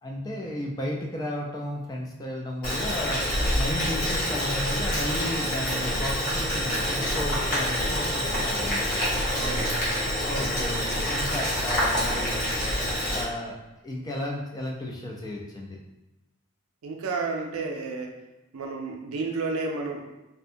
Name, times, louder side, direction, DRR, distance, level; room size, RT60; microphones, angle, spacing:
voice 1, 0.0-3.2 3.5-8.9 10.1-12.5 13.1-13.6 13.8-15.8, left 1 dB, 20° left, -1 dB, 0.3 m, -34 dB
Boiling, 2.6-13.2, equal, 45° left, 0.9 m, -27 dB
voice 2, 9.3-9.9 16.8-18.2 18.5-20.2, right 3 dB, 85° right, 2 dB, 0.4 m, -31 dB
2.7 x 2.1 x 2.5 m, 0.99 s
head